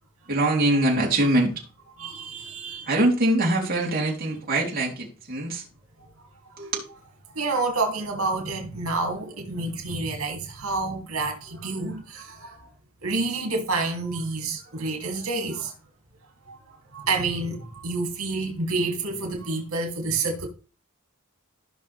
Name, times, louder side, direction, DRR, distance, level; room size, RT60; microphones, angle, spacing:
voice 1, 0.3-1.5 2.9-5.6 6.6-6.7, right 1 dB, 45° right, 3.6 m, -23 dB
voice 2, 2.0-2.9 7.3-12.7 13.0-15.7 16.5-16.6 16.9-20.5, right 3 dB, 85° right, 3.0 m, -28 dB
15.5 x 6.3 x 3.5 m
head